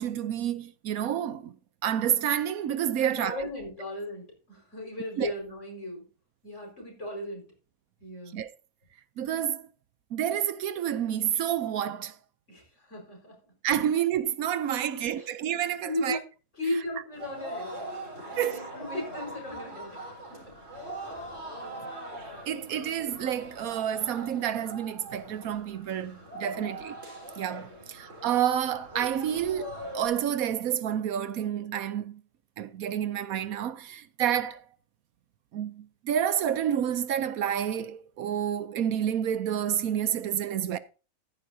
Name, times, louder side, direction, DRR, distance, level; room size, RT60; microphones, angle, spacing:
voice 1, 0.0-1.5 1.8-3.5 5.2-5.3 8.3-8.5 9.2-9.7 10.1-12.2 13.6-16.2 18.4-18.6 22.5-27.0 27.4-32.2 32.6-34.6 35.5-40.8, right 10 dB, 75° right, 1.1 m, -29 dB
voice 2, 3.0-6.0 6.4-7.5 8.0-8.4 12.5-13.5 14.8-15.3 15.9-16.2 16.6-17.9 18.3-21.2 21.6-21.9 26.7-26.8 27.7-28.0, left 1 dB, 50° left, 5.5 m, -37 dB
sound 1, 17.1-30.1, right 1 dB, 55° right, 4.7 m, -42 dB
14.0 x 11.0 x 2.7 m
omnidirectional pair, 1.6 m